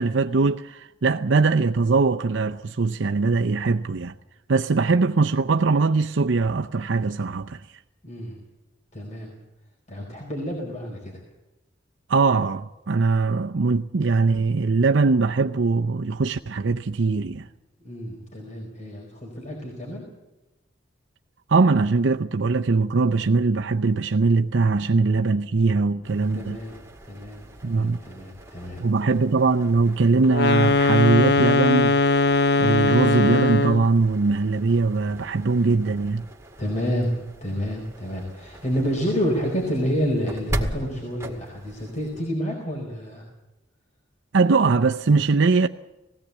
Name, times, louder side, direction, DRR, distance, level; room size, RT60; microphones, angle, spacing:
voice 1, 0.0-4.1 4.5-7.6 12.1-17.5 21.5-26.6 27.6-28.0 28.8-32.0 32.6-36.3 44.3-45.7, right 4 dB, 80° right, 0.6 m, -21 dB
voice 2, 8.0-8.4 8.9-9.3 9.9-11.2 17.8-20.0 26.3-26.8 27.0-28.8 36.6-43.2, equal, 40° left, 4.5 m, -29 dB
sound 1, 26.0-42.3, right 1 dB, 15° right, 1.9 m, -39 dB
sound 2, 30.3-33.9, left 3 dB, 60° left, 0.7 m, -20 dB
20.0 x 16.5 x 8.2 m
head